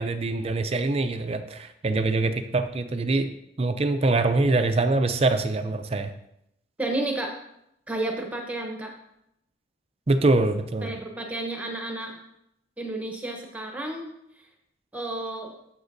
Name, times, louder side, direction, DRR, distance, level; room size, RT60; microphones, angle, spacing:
voice 1, 0.0-3.3 3.6-6.1 10.1-10.9, right 2 dB, 30° right, 8 dB, 0.4 m, -24 dB
voice 2, 6.8-7.3 7.9-8.9 10.8-12.2 12.8-14.1 14.9-15.5, right 2 dB, 5° right, 2 dB, 0.8 m, -31 dB
13.0 x 7.1 x 2.6 m, 0.80 s
head